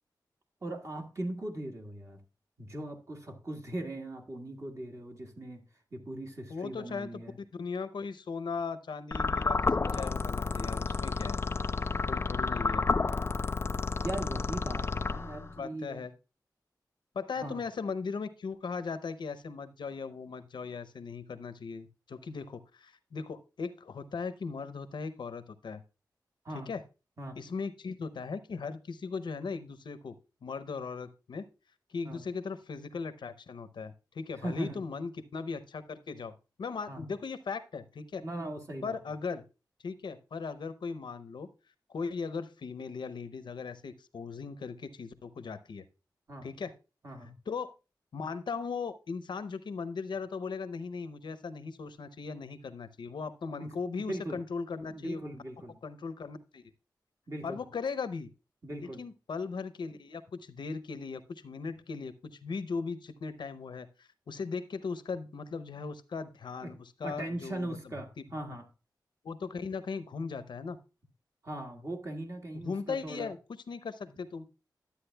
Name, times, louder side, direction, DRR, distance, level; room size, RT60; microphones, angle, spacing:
voice 1, 0.6-2.2 2.6-5.6 5.9-7.4 14.0-16.0 17.4-17.6 26.4-26.7 27.2-27.4 32.0-32.2 34.4-34.8 36.9-37.1 38.2-39.0 46.3-46.5 47.0-47.3 53.6-54.4 54.9-55.8 57.3-57.6 58.6-59.0 66.6-66.7 67.0-68.6 71.4-73.3, right 1 dB, 45° right, 3 dB, 1.6 m, -39 dB
voice 2, 6.5-7.1 7.6-11.4 12.1-12.9 15.6-16.1 17.1-25.8 26.5-26.8 27.4-30.1 30.4-31.5 31.9-38.2 38.8-39.4 39.8-41.5 41.9-45.8 46.4-46.7 47.5-47.7 48.1-55.2 55.8-56.6 57.4-58.3 58.8-67.8 69.2-70.8 72.6-73.4 73.7-74.5, left 5 dB, 85° left, 13 dB, 0.6 m, -38 dB
sound 1, 9.1-15.6, left 4 dB, 35° left, 0.3 m, -31 dB
11.5 x 8.3 x 2.2 m, 0.31 s
wide cardioid pair, 75°, 8 cm